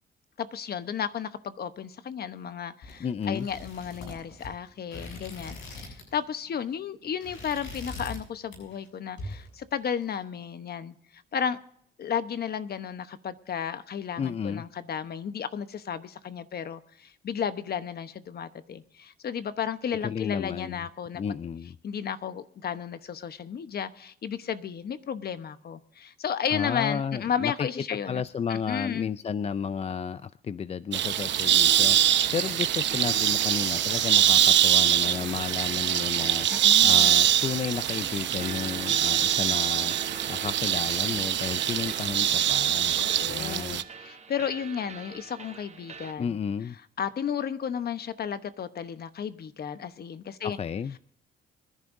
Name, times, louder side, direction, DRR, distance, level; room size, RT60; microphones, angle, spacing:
voice 1, 0.4-11.6 12.0-21.2 21.8-28.2 28.5-29.1 36.5-37.1 43.0-46.4 47.0-50.6, left 8 dB, 50° left, 1.0 m, -33 dB
sound 1, 2.8-6.2 6.5-6.7 7.0-8.2 8.5-8.9 9.2-10.1, left 2 dB, 75° left, 7.5 m, -42 dB
voice 2, 3.0-3.5 14.2-14.7 20.0-20.8 21.1-21.8 26.5-27.7 28.1-39.9 40.3-43.0 43.3-43.8 46.2-46.8 50.4-51.0, left 7 dB, 30° left, 0.4 m, -32 dB
sound 2, 30.9-43.8, right 11 dB, 65° right, 0.8 m, -23 dB
sound 3, 31.6-46.1, right 5 dB, 35° right, 1.1 m, -43 dB
25.0 x 11.0 x 2.7 m
cardioid pair, 90°, 20 cm